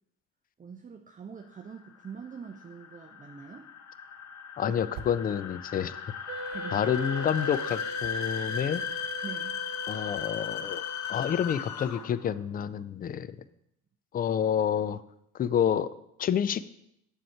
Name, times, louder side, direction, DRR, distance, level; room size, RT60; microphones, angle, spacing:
voice 1, 0.6-3.7 4.7-4.8 6.3-6.9 9.2-9.6, right 6 dB, 20° right, 4 dB, 0.6 m, -44 dB
sound 1, 1.6-12.3, left 8 dB, 40° left, 0.7 m, -37 dB
sound 2, 3.8-5.4 5.7-9.4, right 7 dB, 70° right, 0.8 m, -51 dB
voice 2, 4.6-6.0 6.7-8.8 9.9-13.4 14.1-15.0 15.3-15.9 16.2-16.6, left 8 dB, 25° left, 16 dB, 0.3 m, -28 dB
Wind instrument woodwind instrument, 6.3-11.5, right 2 dB, 35° right, 1.1 m, -41 dB
7.5 x 6.6 x 4.5 m, 0.78 s
figure-of-eight pair, 50°, 43 cm